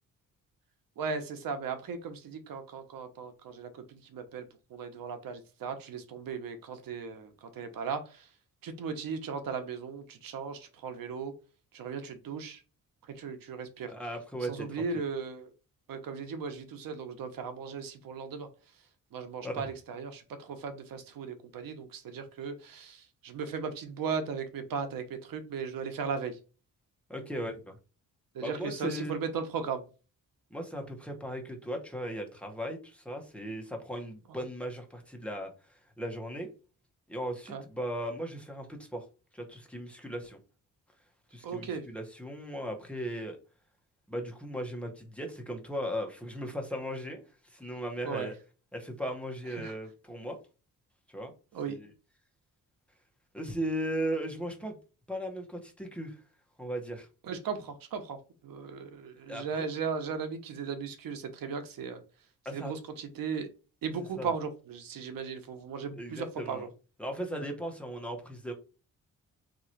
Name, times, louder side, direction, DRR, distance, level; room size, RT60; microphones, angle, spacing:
voice 1, 1.0-3.7 4.1-4.4 4.7-7.3 7.6-8.0 8.6-11.3 11.7-12.6 13.2-13.9 14.5-15.4 15.9-18.5 19.1-23.0 23.2-25.0 25.3-26.3 28.4-29.8 37.5-37.6 41.4-41.8 48.0-48.3 49.6-49.7 51.5-51.8 57.3-58.2 58.4-62.0 62.5-63.5 63.8-66.7, right 5 dB, 80° right, 8 dB, 0.9 m, -36 dB
voice 2, 13.9-15.0 19.4-19.7 27.1-27.7 28.4-29.2 30.5-36.5 37.1-39.0 39.3-40.4 41.3-43.4 44.1-48.3 48.7-50.4 51.1-51.3 51.7-51.9 53.3-54.8 55.1-56.2 56.6-57.1 59.3-59.7 62.4-62.7 64.2-64.3 65.9-66.7 67.0-68.5, equal, 5° left, 2 dB, 1.0 m, -37 dB
3.7 x 3.0 x 4.4 m, 0.33 s
wide cardioid pair, 135°, 34 cm